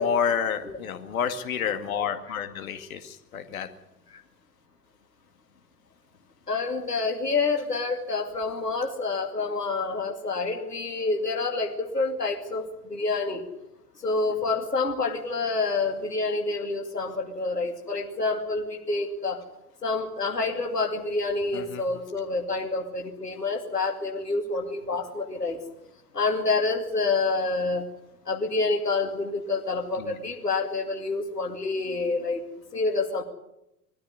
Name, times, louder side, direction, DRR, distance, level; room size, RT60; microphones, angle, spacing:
voice 1, 0.0-3.7 21.5-21.8 30.0-30.1, left 7 dB, 60° left, 7 dB, 2.1 m, -29 dB
voice 2, 6.5-13.4 14.0-19.4 19.8-25.6 26.1-27.9 28.3-32.4 32.7-33.2, left 3 dB, 85° left, 2 dB, 2.6 m, -28 dB
21.5 x 13.5 x 9.6 m, 0.87 s
figure-of-eight pair, 90°, 47 cm